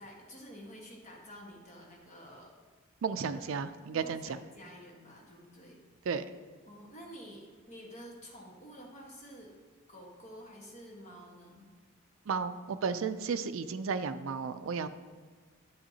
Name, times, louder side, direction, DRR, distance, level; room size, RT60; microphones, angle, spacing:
voice 1, 0.0-2.5 3.3-5.8 6.7-9.5 9.9-11.7, equal, 30° left, -1 dB, 1.4 m, -50 dB
voice 2, 3.0-4.2 6.1-6.2 12.3-14.9, right 5 dB, 65° right, 10 dB, 0.4 m, -33 dB
9.0 x 8.7 x 2.8 m, 1.4 s
head